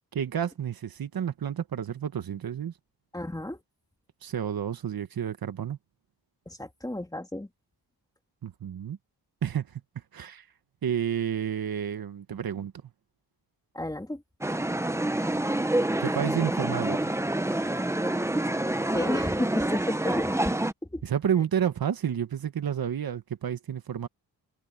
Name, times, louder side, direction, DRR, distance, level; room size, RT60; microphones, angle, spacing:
voice 1, 0.1-2.7 4.2-5.8 8.4-9.0 9.4-9.8 10.1-10.4 10.8-12.7 16.0-17.1 21.0-24.1, right 9 dB, 60° right, 1.5 m, -30 dB
voice 2, 3.1-3.6 6.5-7.5 13.7-14.2 18.9-20.5 20.9-21.0, left 1 dB, 10° left, 2.8 m, -32 dB
sound 1, 14.4-20.7, right 1 dB, 5° right, 0.9 m, -27 dB
wide cardioid pair, 110°, 41 cm